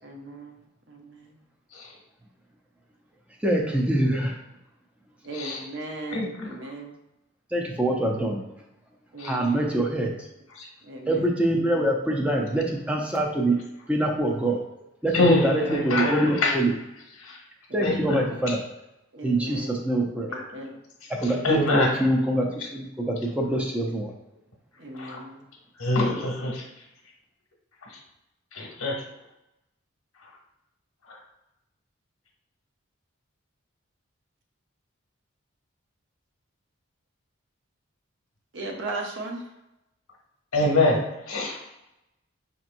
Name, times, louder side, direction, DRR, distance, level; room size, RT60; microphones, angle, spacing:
voice 1, 0.0-0.5 0.9-1.4 5.2-6.9 9.1-9.9 10.8-11.3 12.9-13.0 15.3-16.6 17.7-18.5 19.1-19.8 20.3-20.8 21.5-21.7 24.8-25.4 38.5-39.4, right 1 dB, 60° right, 2 dB, 0.7 m, -37 dB
voice 2, 3.4-4.4 7.5-8.4 9.2-10.1 11.1-13.6 13.9-14.6 15.0-16.7 17.7-18.6 19.2-20.3 21.1-24.1, right 1 dB, 5° right, 0 dB, 0.5 m, -24 dB
voice 3, 6.1-6.5 9.2-9.4 10.5-10.7 15.1-16.6 17.2-17.4 17.8-18.2 20.3-20.4 21.2-21.9 24.9-25.2 25.8-26.6 27.9-28.0 28.5-29.0 31.1-31.2 40.5-41.6, left 2 dB, 90° left, -1 dB, 1.1 m, -25 dB
5.4 x 2.9 x 2.5 m, 0.91 s
head